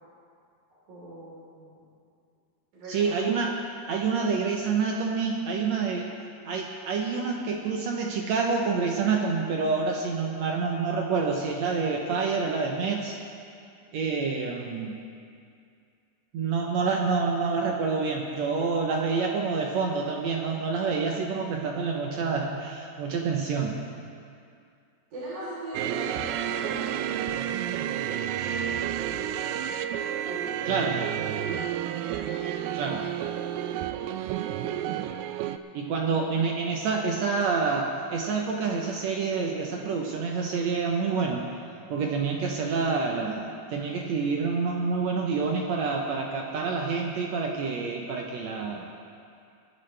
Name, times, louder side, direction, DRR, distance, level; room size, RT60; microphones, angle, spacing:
voice 1, 0.9-1.8 2.7-3.1 25.1-26.9 27.2-28.0 28.4-29.2 30.2-30.7 31.1-31.7, right 1 dB, 55° right, -11 dB, 5.1 m, -41 dB
voice 2, 2.9-3.6 3.9-6.1 6.4-13.2 13.9-15.0 16.3-23.8 30.6-31.0 32.7-33.1 35.7-41.4 41.9-48.9, right 4 dB, 75° right, 0 dB, 1.6 m, -27 dB
sound 1, 25.7-35.6, right 10 dB, 90° right, 2.4 m, -30 dB
21.0 x 12.0 x 3.3 m, 2.4 s
omnidirectional pair, 4.2 m